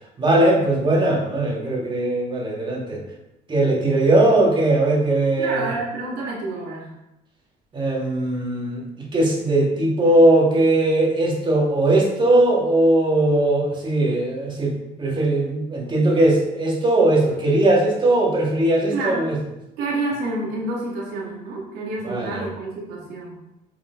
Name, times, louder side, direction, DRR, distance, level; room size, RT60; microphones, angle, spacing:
voice 1, 0.2-3.0 3.5-5.7 7.7-14.7 15.0-19.4 22.0-22.4, right 1 dB, 30° right, -1 dB, 2.6 m, -19 dB
voice 2, 5.4-6.9 18.9-19.3 19.8-23.3, right 2 dB, 85° right, -4 dB, 3.1 m, -28 dB
8.8 x 6.3 x 4.2 m, 0.91 s
cardioid pair, 110°, 17 cm